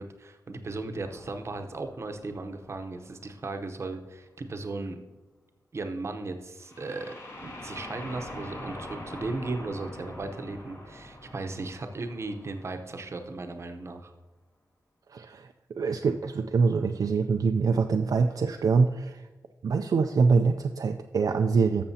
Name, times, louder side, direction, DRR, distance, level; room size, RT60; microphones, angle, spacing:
voice 1, 0.0-5.0 5.7-7.1 7.4-14.1, right 3 dB, 45° right, 6 dB, 0.8 m, -36 dB
sound 1, 1.0-3.9 6.6-13.5, left 1 dB, 45° left, 1.8 m, -44 dB
voice 2, 15.1-19.3 19.6-21.8, right 4 dB, 65° right, 5 dB, 0.4 m, -24 dB
12.5 x 6.9 x 2.8 m, 1.2 s
wide cardioid pair, 145°, 7 cm